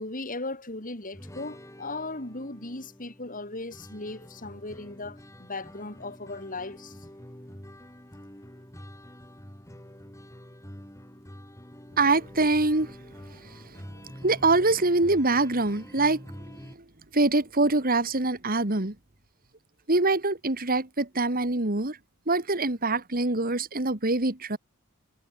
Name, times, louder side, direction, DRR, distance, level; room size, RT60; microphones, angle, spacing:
voice 1, 0.0-7.1, left 2 dB, 35° left, 4.3 m, -37 dB
sound 1, 1.1-16.8, equal, 15° left, 4.9 m, -47 dB
voice 2, 12.0-13.0 13.3-13.8 14.2-16.2 17.1-19.0 19.9-22.0 22.3-24.6, right 2 dB, 40° right, 2.3 m, -24 dB
head